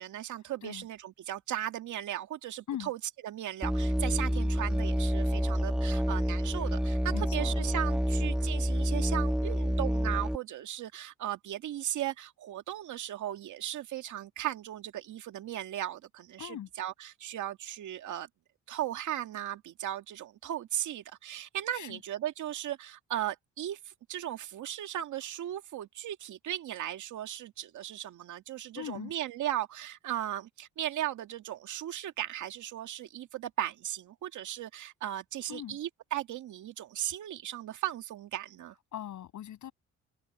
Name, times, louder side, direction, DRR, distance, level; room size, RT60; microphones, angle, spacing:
voice 1, 0.0-18.3 18.7-38.8, right 12 dB, 75° right, 2.1 m, -37 dB
Musical instrument, 3.6-10.4, equal, ahead, 1.8 m, -28 dB
voice 2, 7.1-7.6 16.4-16.7 21.7-22.0 28.8-29.1 35.5-35.8 38.9-39.7, left 11 dB, 75° left, 7.1 m, -40 dB
cardioid pair, 90°, 30 cm